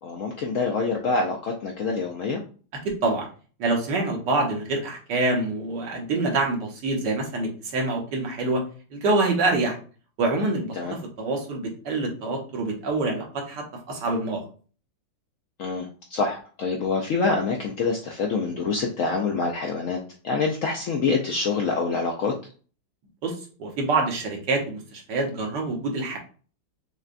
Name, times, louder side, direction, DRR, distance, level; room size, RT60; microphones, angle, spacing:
voice 1, 0.0-2.4 10.8-10.9 15.6-22.3, left 4 dB, 70° left, 1 dB, 0.7 m, -26 dB
voice 2, 2.8-3.3 3.6-8.6 8.9-9.8 10.2-14.4 23.2-23.3 23.6-26.2, right 2 dB, 75° right, 1 dB, 1.6 m, -26 dB
6.4 x 2.2 x 2.5 m, 0.39 s
omnidirectional pair, 1.9 m